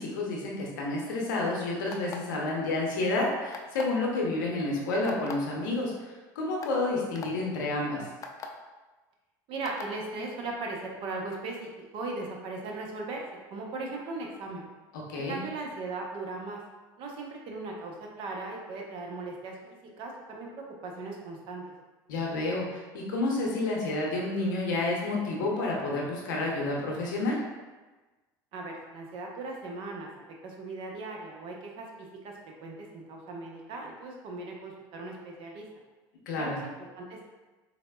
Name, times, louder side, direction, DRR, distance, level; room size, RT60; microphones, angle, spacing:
voice 1, 0.0-8.0 14.9-15.4 22.1-27.4 36.3-36.6, left 2 dB, 90° left, -2 dB, 0.6 m, -30 dB
sound 1, 1.9-2.4 3.5-4.0 5.1-5.3 6.1-6.2 6.6-6.7 7.1-7.3 8.2-8.5 9.6-9.9, left 5 dB, 35° left, 0.3 m, -40 dB
voice 2, 9.5-14.7 15.1-16.6 17.0-21.6 28.5-30.1 30.4-35.7 36.4-37.2, right 3 dB, 60° right, 0 dB, 0.6 m, -38 dB
4.0 x 2.0 x 2.2 m, 1.2 s
supercardioid pair, 90°, 10 cm